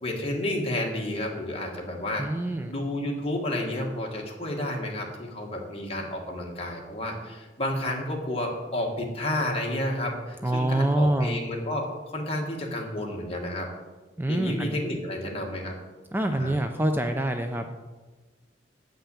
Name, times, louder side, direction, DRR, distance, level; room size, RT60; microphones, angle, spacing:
voice 1, 0.0-2.3 2.7-11.9 12.1-13.7 14.3-15.7 16.3-16.5, left 1 dB, 35° left, 0 dB, 1.7 m, -31 dB
voice 2, 2.2-2.7 10.4-11.4 14.2-14.8 16.1-17.8, right 1 dB, 10° right, 6 dB, 0.4 m, -26 dB
8.6 x 5.8 x 7.0 m, 1.3 s
head